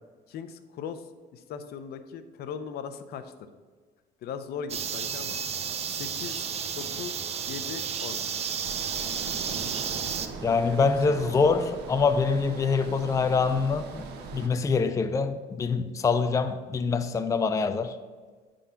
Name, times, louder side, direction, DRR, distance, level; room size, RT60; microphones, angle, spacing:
voice 1, 0.3-1.0 1.3-3.3 4.2-5.4 5.9-6.4 6.8-7.2 7.5-8.2 10.6-10.9, left 7 dB, 70° left, 10 dB, 0.7 m, -38 dB
sound 1, 4.7-10.3, right 7 dB, 40° right, 0.6 m, -32 dB
sound 2, 8.6-14.5, right 4 dB, 80° right, 1.1 m, -40 dB
voice 2, 10.4-14.1 14.3-18.0, left 4 dB, 20° left, 10 dB, 0.4 m, -25 dB
9.1 x 3.8 x 5.6 m, 1.4 s
cardioid pair, 110°, 17 cm